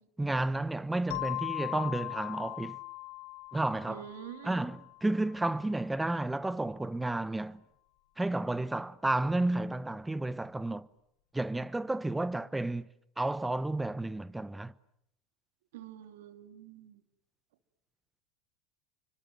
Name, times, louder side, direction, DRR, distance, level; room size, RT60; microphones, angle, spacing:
voice 1, 0.2-2.8 3.5-4.1 4.4-7.6 8.2-10.9 11.3-12.9 13.2-14.7, right 2 dB, 10° right, 1.0 m, -32 dB
sound 1, 1.1-5.5, left 21 dB, 70° left, 5.5 m, -40 dB
voice 2, 3.9-4.5 15.7-17.0, right 10 dB, 80° right, 2.9 m, -46 dB
29.5 x 25.5 x 7.8 m
hypercardioid pair, 100°, 0 cm